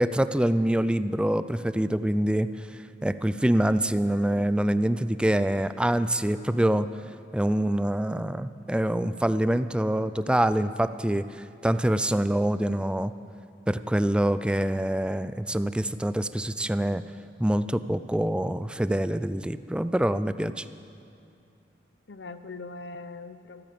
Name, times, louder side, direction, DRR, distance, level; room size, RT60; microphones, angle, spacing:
voice 1, 0.0-2.5 3.0-6.9 7.3-11.2 11.6-13.1 13.7-17.0 17.4-20.6, right 1 dB, 5° right, 13 dB, 0.3 m, -25 dB
voice 2, 4.1-4.6 22.1-23.6, left 3 dB, 70° left, 11 dB, 0.7 m, -42 dB
14.0 x 13.5 x 6.9 m, 2.5 s
head